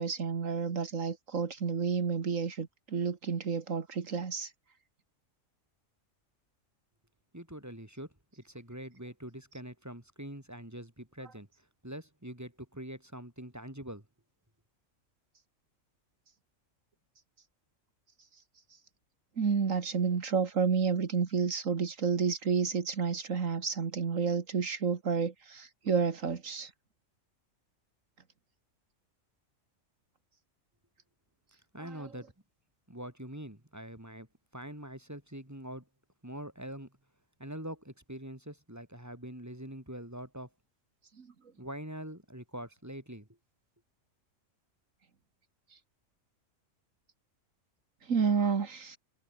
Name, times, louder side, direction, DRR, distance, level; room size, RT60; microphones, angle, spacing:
voice 1, 0.0-4.5 19.4-26.7 41.2-41.3 48.0-49.0, right 5 dB, 75° right, 2.1 m, -30 dB
voice 2, 7.3-11.5 11.8-14.1 31.7-32.3 32.9-34.3 34.5-35.8 36.2-37.0 37.4-40.5 41.6-43.3, right 1 dB, 10° right, 3.2 m, -44 dB
omnidirectional pair, 1.4 m